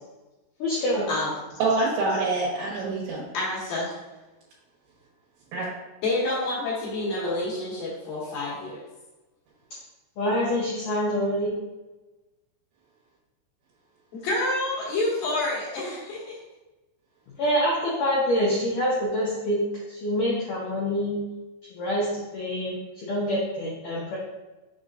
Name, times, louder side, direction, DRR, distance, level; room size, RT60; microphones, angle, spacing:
voice 1, 0.6-1.1 10.2-11.5 17.4-21.2 21.7-22.1 22.3-24.2, equal, 80° left, -6 dB, 1.8 m, -26 dB
voice 2, 1.6-3.2 5.5-5.7, right 3 dB, 75° right, -5 dB, 3.3 m, -25 dB
voice 3, 3.3-4.0 6.0-8.8 14.1-16.4, left 2 dB, 60° left, -5 dB, 2.5 m, -28 dB
6.9 x 5.3 x 2.5 m, 1.1 s
omnidirectional pair, 5.4 m